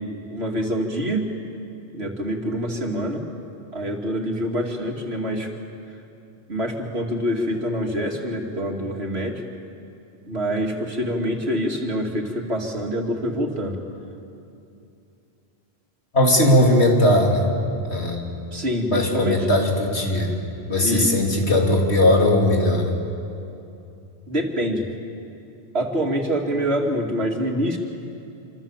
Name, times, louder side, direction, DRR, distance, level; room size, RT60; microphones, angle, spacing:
voice 1, 0.3-1.3 1.9-3.2 3.7-5.5 6.5-9.4 10.3-13.8 18.5-19.5 20.8-21.1 24.3-24.9 25.7-27.8, equal, 75° right, 1 dB, 2.9 m, -25 dB
voice 2, 16.1-17.5 17.9-18.3 18.9-20.3 20.7-22.9, left 1 dB, 80° left, 0 dB, 3.5 m, -18 dB
27.0 x 26.0 x 7.3 m, 2.7 s
omnidirectional pair, 1.1 m